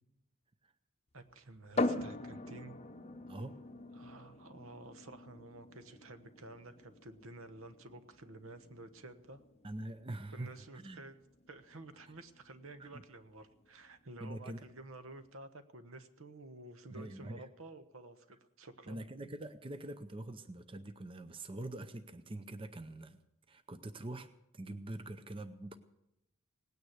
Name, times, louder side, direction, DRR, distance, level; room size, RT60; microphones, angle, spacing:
voice 1, 1.1-2.8 3.9-9.4 10.3-11.2 11.5-19.0, right 2 dB, 70° right, 10 dB, 1.2 m, -51 dB
sound 1, 1.8-15.3, left 2 dB, 30° left, 0.8 m, -43 dB
voice 2, 9.6-10.5 10.8-11.0 12.8-12.9 14.2-14.6 16.9-17.4 18.9-23.2 23.5-24.3 24.5-25.7, right 1 dB, 25° right, 10 dB, 0.6 m, -44 dB
18.5 x 9.5 x 8.0 m, 0.87 s
head